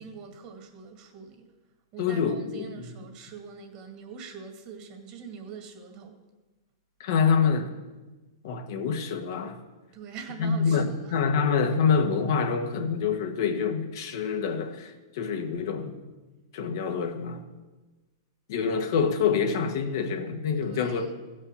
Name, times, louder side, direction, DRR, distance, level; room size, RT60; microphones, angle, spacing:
voice 1, 0.0-1.5 1.9-6.2 9.9-11.1 20.6-21.1, right 6 dB, 40° right, 2.0 m, -43 dB
voice 2, 2.0-2.7 7.0-7.7 8.4-9.6 10.4-16.0 16.5-17.4 18.5-21.1, left 6 dB, 60° left, 1.3 m, -26 dB
15.5 x 5.5 x 6.8 m
hypercardioid pair, 135°, 2 cm